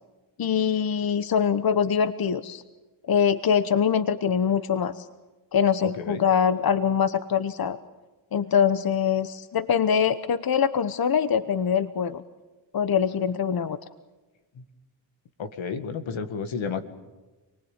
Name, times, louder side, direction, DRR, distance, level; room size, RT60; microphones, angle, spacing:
voice 1, 0.4-2.6 3.1-5.1 5.5-7.8 8.3-12.2 12.7-13.8, left 7 dB, 50° left, 13 dB, 1.1 m, -23 dB
voice 2, 5.8-6.3 14.6-14.7 15.4-16.8, left 5 dB, 80° left, 9 dB, 2.0 m, -32 dB
28.0 x 19.5 x 9.0 m, 1.2 s
cardioid pair, 60°, 46 cm